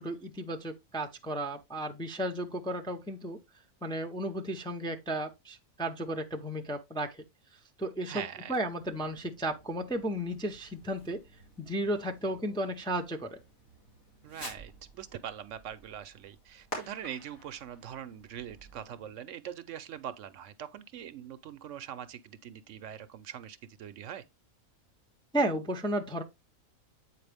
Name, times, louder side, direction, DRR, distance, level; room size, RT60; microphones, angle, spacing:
voice 1, 0.0-3.4 3.8-7.2 7.8-11.2 11.6-13.4 25.3-26.2, right 1 dB, 5° left, 0.5 m, -34 dB
voice 2, 8.1-8.6 14.2-24.2, right 9 dB, 70° right, 0.9 m, -42 dB
Fireworks, 8.5-19.2, equal, 85° left, 3.7 m, -50 dB
8.3 x 4.6 x 3.4 m
omnidirectional pair, 1.4 m